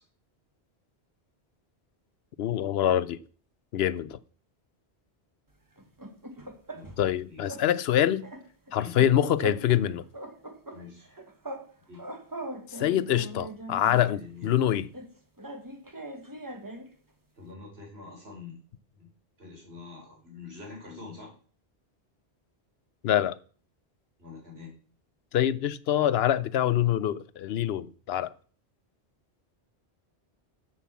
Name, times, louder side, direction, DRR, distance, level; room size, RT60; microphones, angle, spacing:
voice 1, 2.4-3.2 3.7-4.2 7.0-8.3 8.7-10.0 12.7-14.9 23.0-23.4 25.3-28.3, left 11 dB, 70° left, 0.8 m, -25 dB
sound 1, 5.8-7.1 7.4-7.7 7.9-9.8 10.1-11.7 11.9-14.1 14.9-16.9, equal, 20° right, 1.1 m, -40 dB
voice 2, 7.3-7.7 8.7-8.9 10.7-11.1 11.9-12.1 14.1-14.5 17.4-18.6 18.9-19.1 19.4-21.3 24.2-24.7, left 4 dB, 70° right, 4.6 m, -45 dB
7.7 x 6.9 x 7.3 m
omnidirectional pair, 1.1 m